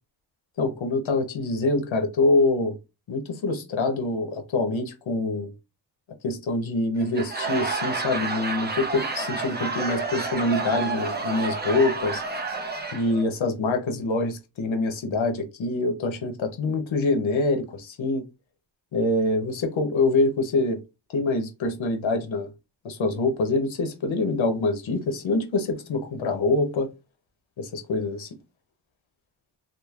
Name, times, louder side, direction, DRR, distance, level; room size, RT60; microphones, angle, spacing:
voice 1, 0.6-2.8 3.1-5.5 6.2-12.2 12.9-18.2 18.9-20.8 21.1-22.5 22.8-26.9 27.6-28.3, left 2 dB, 75° left, 0.9 m, -25 dB
Laughter / Crowd, 7.0-13.2, right 3 dB, 20° right, 0.7 m, -30 dB
3.0 x 2.5 x 2.4 m
cardioid pair, 55°, 47 cm